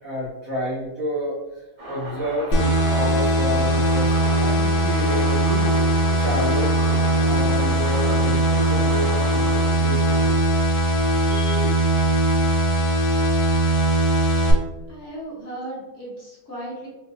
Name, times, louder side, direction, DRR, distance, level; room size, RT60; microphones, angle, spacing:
voice 1, 0.0-5.7 6.1-10.3 11.3-11.7, equal, 70° right, -7 dB, 0.8 m, -30 dB
sound 1, 1.8-10.3, right 1 dB, 30° right, 1.0 m, -36 dB
sound 2, 2.5-14.5, right 1 dB, 85° left, 0.8 m, -20 dB
voice 2, 14.9-16.9, right 1 dB, 35° left, -7 dB, 1.3 m, -35 dB
4.5 x 2.3 x 2.7 m, 1.1 s
omnidirectional pair, 2.4 m